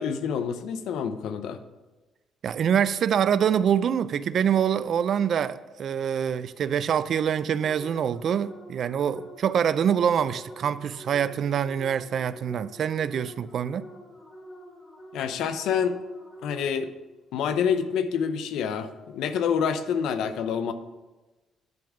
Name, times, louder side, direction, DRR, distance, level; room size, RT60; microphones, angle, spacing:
voice 1, 0.0-1.6 15.1-16.0 16.4-16.9 17.3-20.7, left 7 dB, 80° left, 0.6 m, -27 dB
voice 2, 2.4-13.9, right 8 dB, 55° right, 0.4 m, -25 dB
sound 1, 7.6-17.0, equal, 30° left, 1.5 m, -47 dB
10.5 x 3.7 x 7.2 m
cardioid pair, 115°, 0 cm